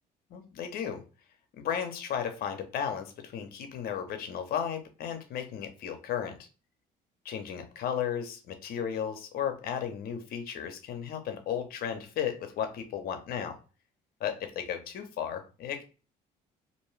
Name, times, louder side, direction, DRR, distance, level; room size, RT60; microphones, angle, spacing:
voice 1, 0.3-1.0 1.6-6.4 7.2-13.6 14.2-15.8, left 8 dB, 65° left, 6 dB, 0.7 m, -34 dB
2.6 x 2.2 x 3.1 m, 0.33 s
cardioid pair, 110°, 17 cm